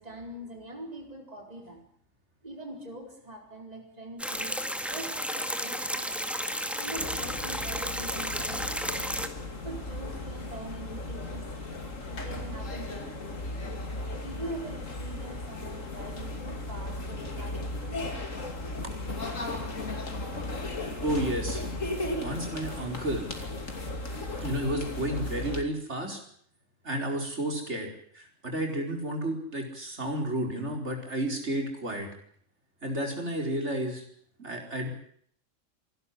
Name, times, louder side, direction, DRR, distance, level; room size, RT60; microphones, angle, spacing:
voice 1, 0.0-1.9 2.4-6.3 6.7-9.0 9.6-11.8 12.1-13.6 14.2-18.2, right 1 dB, 30° right, 3 dB, 4.3 m, -43 dB
sound 1, 4.2-9.3, equal, ahead, 1.8 m, -32 dB
sound 2, 7.0-25.6, left 2 dB, 85° left, 3.2 m, -36 dB
voice 2, 21.0-21.6 22.2-23.3 24.3-26.2 26.8-27.9 28.1-32.1 32.8-34.0 34.4-34.9, right 1 dB, 60° right, 2 dB, 5.1 m, -31 dB
26.5 x 12.5 x 9.9 m, 0.62 s
omnidirectional pair, 1.3 m